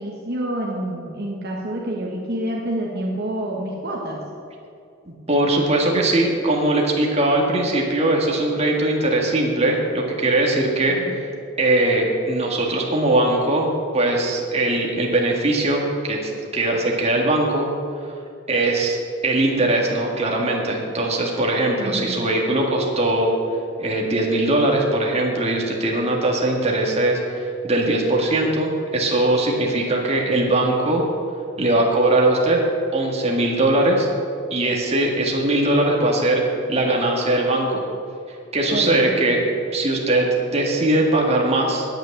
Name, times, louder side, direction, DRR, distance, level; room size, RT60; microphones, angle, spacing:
voice 1, 0.0-4.2 10.9-11.1 21.7-22.2 38.7-39.4, right 1 dB, 55° right, -2 dB, 1.4 m, -28 dB
voice 2, 5.3-11.3 11.6-13.7 13.9-17.7 18.5-23.3 23.8-31.0 31.6-32.6 32.9-34.1 34.5-37.8 38.5-39.4 39.7-41.9, right 2 dB, 30° right, -1 dB, 1.9 m, -20 dB
9.2 x 8.7 x 8.5 m, 2.5 s
head